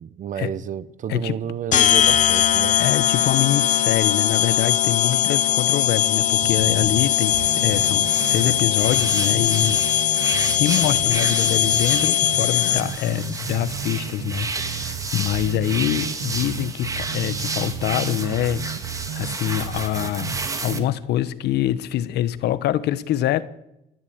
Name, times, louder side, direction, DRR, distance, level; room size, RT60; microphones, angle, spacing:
voice 1, 0.0-2.8, right 9 dB, 50° right, 1.0 m, -30 dB
sound 1, 1.7-13.1, left 11 dB, 50° left, 0.9 m, -20 dB
voice 2, 2.8-9.8 10.6-23.4, left 12 dB, 75° left, 1.1 m, -25 dB
sound 2, 6.4-20.9, right 11 dB, 90° right, 1.0 m, -34 dB
sound 3, 6.6-20.8, right 3 dB, 20° right, 2.1 m, -32 dB
28.5 x 11.0 x 8.7 m
cardioid pair, 135°, 17 cm